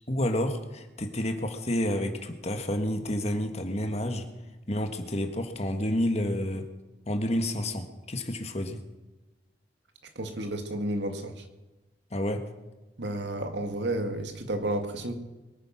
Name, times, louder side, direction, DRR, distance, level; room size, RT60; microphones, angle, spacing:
voice 1, 0.1-4.3 4.7-6.7 7.1-8.8 12.1-12.4, left 1 dB, 40° left, 6 dB, 1.7 m, -29 dB
voice 2, 10.2-11.4 13.0-15.1, right 1 dB, 90° right, 6 dB, 2.1 m, -31 dB
23.0 x 9.2 x 6.0 m, 1.1 s
head